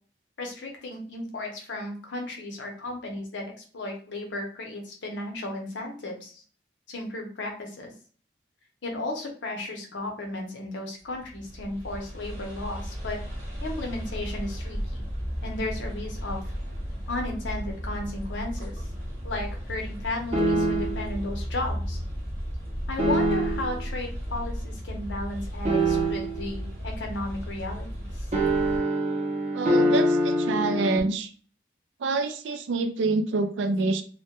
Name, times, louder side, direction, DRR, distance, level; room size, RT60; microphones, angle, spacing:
voice 1, 0.4-6.4 6.9-7.9 8.8-13.2 13.6-15.0 15.4-16.4 17.1-18.8 19.2-22.0 22.9-28.1, left 2 dB, 85° left, 1 dB, 0.7 m, -34 dB
sound 1, 11.1-28.8, equal, 10° right, 0.8 m, -34 dB
sound 2, 20.3-21.1 23.0-23.8 25.6-26.5 28.3-31.0, right 1 dB, 35° right, 0.5 m, -24 dB
voice 2, 29.5-31.3 32.0-34.0, right 3 dB, 85° right, 8 dB, 0.4 m, -26 dB
2.2 x 2.1 x 2.8 m, 0.41 s
head